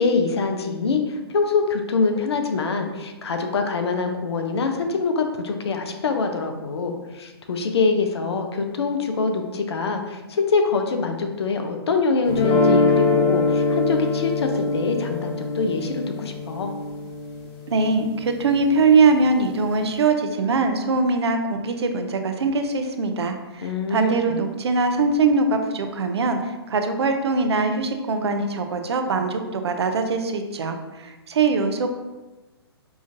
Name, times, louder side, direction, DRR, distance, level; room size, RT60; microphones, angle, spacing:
voice 1, 0.0-16.7 23.6-24.4, left 4 dB, 75° left, 5 dB, 0.6 m, -24 dB
sound 1, 12.3-18.4, left 3 dB, 30° left, 0.8 m, -23 dB
voice 2, 17.7-31.9, right 3 dB, 80° right, 6 dB, 0.5 m, -22 dB
4.9 x 2.5 x 2.6 m, 1.1 s
hypercardioid pair, 135°, 14 cm